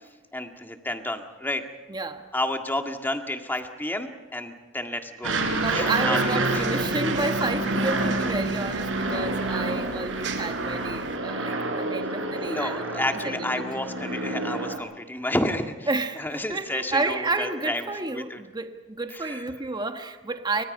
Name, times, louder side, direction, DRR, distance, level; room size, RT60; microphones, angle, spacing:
voice 1, 0.3-1.6 2.3-5.4 5.7-6.6 12.4-15.9 16.2-18.4 19.1-19.4, left 1 dB, 10° left, 5 dB, 1.9 m, -30 dB
voice 2, 1.9-2.3 5.6-13.5 15.9-20.6, right 3 dB, 20° right, 6 dB, 1.4 m, -30 dB
Aircraft, 5.2-14.8, right 2 dB, 80° right, 4.8 m, -28 dB
sound 1, 5.3-11.2, right 4 dB, 60° right, 2.8 m, -38 dB
29.5 x 25.0 x 5.5 m, 1.2 s
head